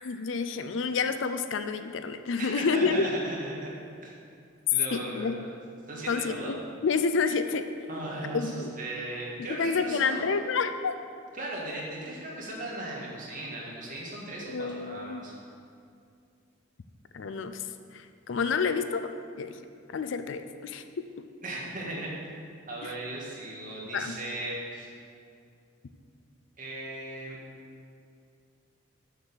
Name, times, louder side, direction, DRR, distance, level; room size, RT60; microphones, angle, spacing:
voice 1, 0.0-3.2 4.9-5.3 6.1-7.7 8.3-8.7 9.5-10.9 14.5-15.3 17.1-17.7 17.9-19.6 19.9-20.8 21.2-21.3 22.8-22.9 23.9-24.2, left 5 dB, 70° left, 10 dB, 0.4 m, -29 dB
voice 2, 2.4-3.7 4.0-4.1 4.7-5.5 5.9-6.5 7.9-10.3 11.3-15.3 21.4-22.1 22.7-24.9 26.6-27.4, right 1 dB, 40° right, -4 dB, 1.8 m, -37 dB
6.6 x 6.4 x 6.6 m, 2.4 s
head